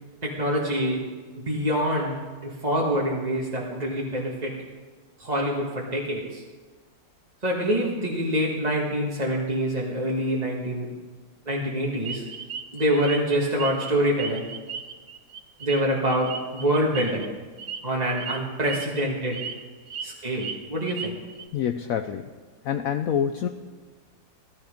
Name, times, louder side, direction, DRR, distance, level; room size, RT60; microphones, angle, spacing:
voice 1, 0.2-1.0 1.3-4.5 5.2-6.4 7.4-10.9 11.5-12.2 12.7-14.5 15.6-17.3 17.8-19.4 20.0-21.1, equal, 25° right, -3 dB, 1.5 m, -26 dB
sound 1, 12.1-13.9 14.2-17.3 17.6-17.8 18.2-18.4 18.7-19.0 19.3-20.1 20.4-21.4, right 6 dB, 50° right, 1.0 m, -36 dB
voice 2, 21.5-22.2 22.6-23.5, left 8 dB, 75° left, 8 dB, 0.8 m, -26 dB
17.0 x 12.0 x 5.1 m, 1.4 s
omnidirectional pair, 2.1 m